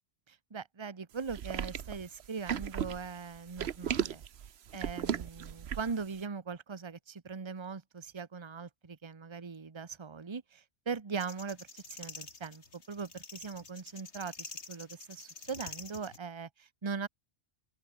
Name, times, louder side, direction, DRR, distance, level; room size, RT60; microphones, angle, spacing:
voice 1, 0.3-4.2 4.7-17.1, right 5 dB, 25° right, 1.0 m, -40 dB
sound 1, 1.3-6.0, right 9 dB, 70° right, 1.1 m, -35 dB
sound 2, 11.2-16.2, left 4 dB, 80° left, 2.8 m, -47 dB
open air
omnidirectional pair, 1.1 m